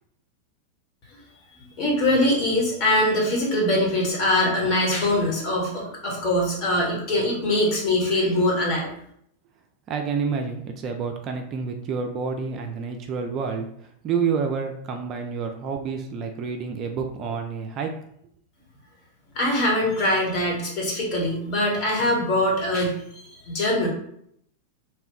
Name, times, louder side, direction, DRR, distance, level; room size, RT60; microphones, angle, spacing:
voice 1, 1.8-8.9 19.3-23.9, left 1 dB, 40° left, -2 dB, 1.1 m, -23 dB
voice 2, 9.9-13.7 14.0-17.9, right 5 dB, 35° right, 4 dB, 0.3 m, -28 dB
2.8 x 2.2 x 3.4 m, 0.69 s
figure-of-eight pair, 90°, 0 cm